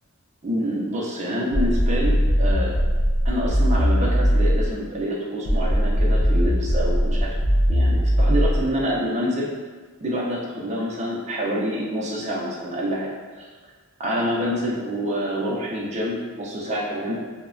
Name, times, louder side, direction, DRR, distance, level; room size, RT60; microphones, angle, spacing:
voice 1, 0.4-2.8 3.2-7.4 7.7-9.5 10.0-13.1 14.0-17.2, equal, 30° right, -3 dB, 0.4 m, -27 dB
sound 1, 1.5-4.8 5.5-8.8, equal, 60° left, 0.5 m, -20 dB
3.0 x 2.0 x 2.4 m, 1.4 s
head